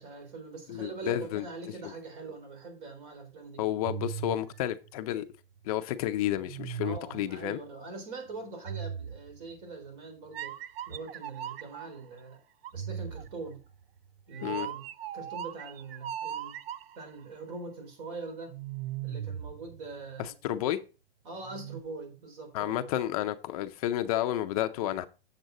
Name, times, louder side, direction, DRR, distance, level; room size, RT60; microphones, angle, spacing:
voice 1, 0.0-3.6 6.8-10.6 10.9-12.4 12.7-13.6 14.3-14.9 15.1-16.6 17.0-18.5 19.0-20.3 21.2-22.9, right 3 dB, 55° right, 3.9 m, -42 dB
voice 2, 0.7-1.5 1.8-1.9 3.6-5.2 5.6-7.6 14.4-14.7 20.2-20.8 22.5-25.1, left 13 dB, 40° left, 0.5 m, -31 dB
sound 1, 3.8-5.6 6.4-7.4 8.6-9.6 10.3-12.0 12.6-17.1 18.5-20.3 21.4-21.8, right 9 dB, 70° right, 0.6 m, -39 dB
7.8 x 7.3 x 3.9 m
hypercardioid pair, 145°, 31 cm